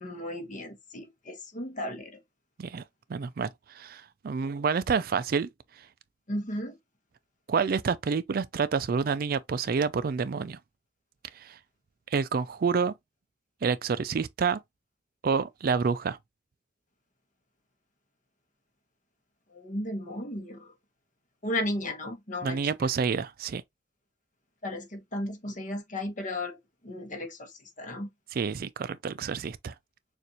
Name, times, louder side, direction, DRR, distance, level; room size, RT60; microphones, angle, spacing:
voice 1, 0.0-2.2 6.3-6.8 19.5-20.7 21.4-22.6 24.6-26.6 26.8-28.1, left 1 dB, 45° left, 1.1 m, -35 dB
voice 2, 3.1-3.5 3.8-5.5 7.5-10.6 11.4-11.6 12.1-12.9 13.6-14.6 15.2-16.2 22.4-23.6 28.3-29.7, right 5 dB, 55° right, 0.4 m, -28 dB
6.7 x 2.5 x 2.9 m
head